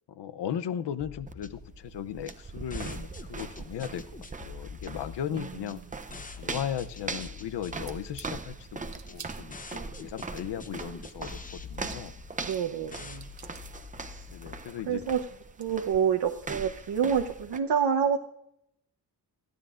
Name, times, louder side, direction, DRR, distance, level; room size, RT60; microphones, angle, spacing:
voice 1, 0.1-4.0 4.4-5.8 6.4-12.2 14.3-15.0, left 9 dB, 85° left, 13 dB, 0.7 m, -37 dB
sound 1, 1.0-14.6, left 5 dB, 20° left, 0.8 m, -46 dB
sound 2, 1.3-17.6, right 4 dB, 20° right, 0.5 m, -41 dB
sound 3, 7.9-8.3 8.9-9.9 11.4-11.5 11.7-12.7 13.0-13.7 14.9-15.0 15.3-15.7, right 6 dB, 45° right, 1.0 m, -48 dB
voice 2, 12.4-13.3 14.1-14.2 14.9-15.2 15.6-18.2, right 7 dB, 70° right, 3 dB, 0.9 m, -27 dB
27.0 x 9.6 x 2.5 m, 0.79 s
wide cardioid pair, 115°, 41 cm